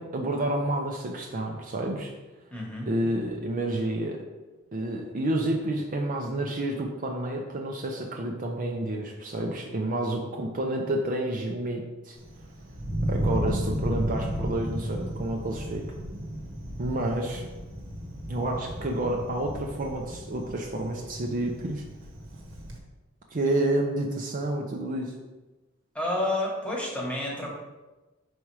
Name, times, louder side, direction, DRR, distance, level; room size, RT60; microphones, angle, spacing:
voice 1, 0.0-2.1 2.9-4.2 4.7-12.2 13.1-15.8 16.8-17.4 18.3-21.8 23.3-25.1, right 1 dB, 40° right, 1 dB, 0.6 m, -29 dB
voice 2, 2.5-2.9 25.9-27.5, left 1 dB, 5° left, -3 dB, 1.3 m, -30 dB
Thunder, 12.2-22.8, equal, 65° right, 1.1 m, -33 dB
4.9 x 4.2 x 4.7 m, 1.1 s
head